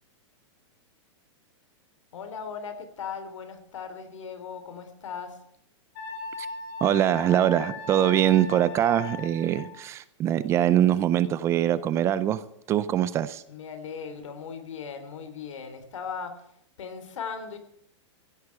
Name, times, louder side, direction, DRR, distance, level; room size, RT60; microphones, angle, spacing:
voice 1, 2.1-5.4 13.5-16.4 16.8-17.6, left 6 dB, 85° left, 3.5 m, -38 dB
Wind instrument woodwind instrument, 5.9-9.7, left 4 dB, 40° left, 5.7 m, -38 dB
voice 2, 6.8-12.4 12.7-13.4, right 11 dB, 15° right, 0.5 m, -23 dB
15.5 x 8.0 x 8.4 m
supercardioid pair, 160°, 16 cm